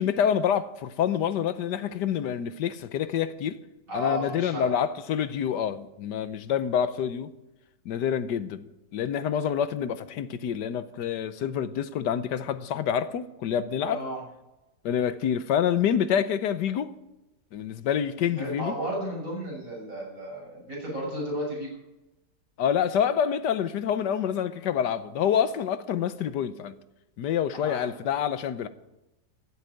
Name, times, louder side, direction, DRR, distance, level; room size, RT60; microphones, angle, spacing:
voice 1, 0.0-3.6 3.9-7.3 7.9-8.7 8.9-14.0 14.8-17.0 17.5-18.7 22.6-26.7 27.2-28.7, left 8 dB, 80° left, 1.4 m, -27 dB
voice 2, 3.9-4.8 13.8-14.2 18.4-21.7 27.5-27.8, right 1 dB, 50° right, 7.4 m, -33 dB
14.5 x 8.2 x 9.8 m
omnidirectional pair, 1.8 m